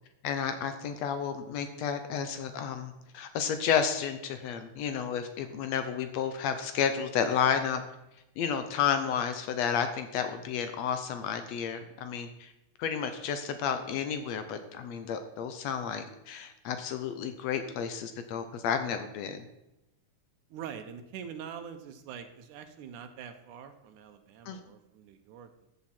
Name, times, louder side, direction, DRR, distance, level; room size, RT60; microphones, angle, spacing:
voice 1, 0.2-7.8 8.4-12.5 12.8-19.4 24.5-24.6, left 7 dB, 70° left, 8 dB, 1.7 m, -31 dB
voice 2, 20.5-25.5, right 8 dB, 85° right, 7 dB, 2.3 m, -44 dB
13.5 x 7.1 x 4.4 m, 0.91 s
omnidirectional pair, 3.5 m